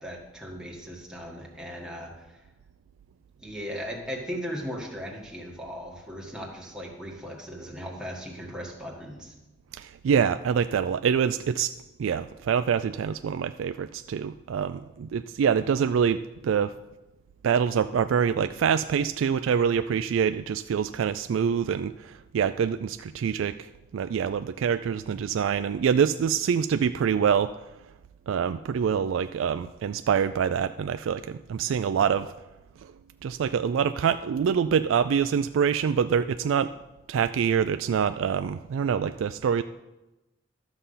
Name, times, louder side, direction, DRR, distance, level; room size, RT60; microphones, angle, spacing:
voice 1, 0.0-2.1 3.4-9.3, equal, 5° right, -2 dB, 1.7 m, -37 dB
voice 2, 9.7-11.7 12.0-16.7 17.4-27.5 28.3-32.3 32.8-32.9 33.2-36.7 37.1-39.6, right 7 dB, 90° right, 10 dB, 0.3 m, -25 dB
12.5 x 6.8 x 5.6 m, 1.0 s
head